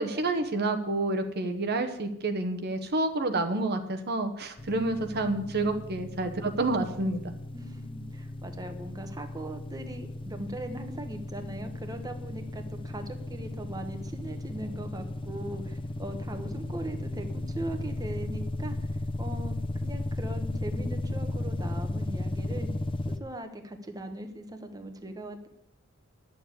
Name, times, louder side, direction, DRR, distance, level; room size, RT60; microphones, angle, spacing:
voice 1, 0.0-7.3, right 2 dB, 50° right, 6 dB, 1.1 m, -29 dB
sound 1, 4.6-23.2, left 1 dB, 25° left, 0.6 m, -35 dB
voice 2, 7.5-18.9 19.2-19.6 19.8-22.7 23.2-25.5, right 1 dB, 20° right, 6 dB, 1.1 m, -40 dB
10.5 x 7.1 x 8.2 m, 0.82 s
head